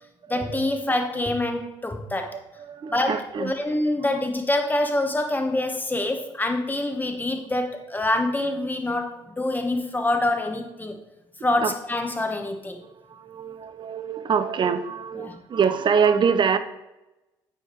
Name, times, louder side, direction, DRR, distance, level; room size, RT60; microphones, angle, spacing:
voice 1, 0.3-2.4 2.9-11.0 11.4-12.8 15.2-15.4, left 1 dB, 15° left, 4 dB, 1.3 m, -26 dB
voice 2, 2.2-3.5 4.1-4.2 11.6-11.7 13.1-16.6, right 6 dB, 40° right, 10 dB, 0.6 m, -25 dB
8.4 x 3.5 x 4.6 m, 0.98 s
hypercardioid pair, 55°, 13 cm